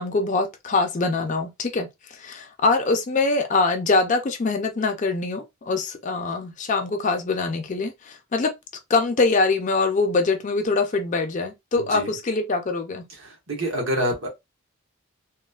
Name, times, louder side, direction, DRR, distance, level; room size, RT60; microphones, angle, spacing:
voice 1, 0.0-8.5 8.9-13.1, left 3 dB, 35° left, 0.4 m, -23 dB
voice 2, 11.7-12.1 13.1-14.3, equal, 65° right, 1.1 m, -27 dB
3.0 x 2.1 x 2.3 m
head